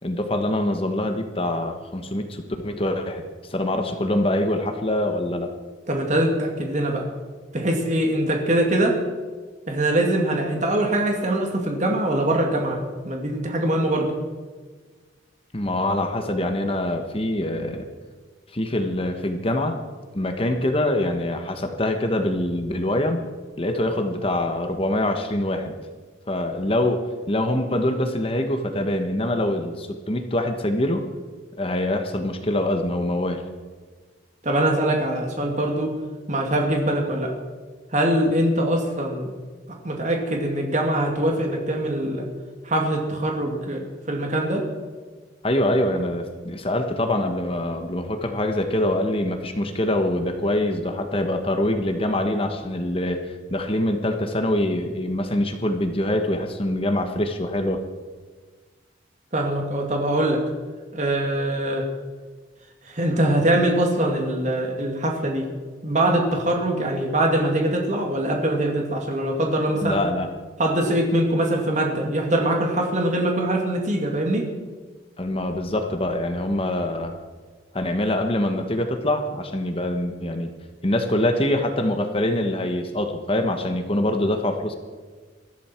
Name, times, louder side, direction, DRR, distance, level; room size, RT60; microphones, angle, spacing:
voice 1, 0.0-5.5 15.5-17.8 18.5-19.8 20.1-23.2 23.6-25.7 26.3-31.1 31.6-33.4 45.4-57.8 69.8-70.3 75.2-77.1 77.7-80.5 80.8-84.8, left 1 dB, 30° left, 6 dB, 1.2 m, -24 dB
voice 2, 5.9-7.0 7.5-9.0 9.7-12.8 13.0-14.1 34.4-35.9 36.3-37.3 37.9-39.3 39.8-42.2 42.6-44.6 59.3-60.4 60.9-61.8 62.9-65.5 65.8-70.0 70.6-74.5, right 1 dB, 40° right, 1 dB, 2.4 m, -23 dB
21.0 x 14.0 x 4.5 m, 1.4 s
head